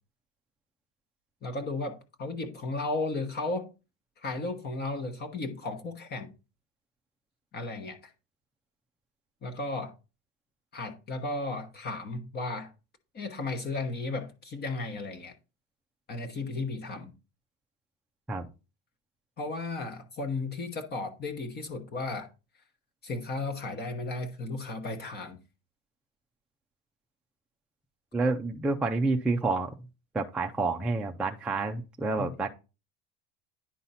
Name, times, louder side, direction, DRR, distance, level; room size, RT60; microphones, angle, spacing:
voice 1, 1.4-3.7 4.2-6.3 7.5-8.1 9.4-9.9 10.7-12.7 13.1-15.3 16.1-17.1 19.4-22.3 23.0-25.4 32.2-32.3, left 3 dB, 25° left, 1.1 m, -34 dB
voice 2, 28.1-29.7 30.1-32.5, right 3 dB, 5° right, 0.3 m, -29 dB
10.0 x 4.0 x 5.6 m
supercardioid pair, 150°, 36 cm